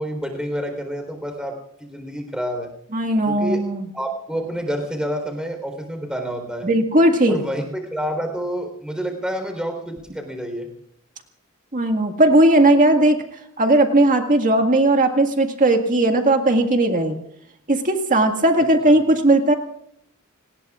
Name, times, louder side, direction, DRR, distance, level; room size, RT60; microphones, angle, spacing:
voice 1, 0.0-1.5 1.8-2.7 3.2-3.6 3.9-6.7 7.3-10.7, equal, 5° right, 4 dB, 3.9 m, -28 dB
voice 2, 2.9-3.9 6.6-7.4 11.7-13.2 13.6-17.2 17.7-19.5, right 1 dB, 35° right, 5 dB, 1.9 m, -17 dB
30.0 x 19.5 x 2.5 m, 0.76 s
head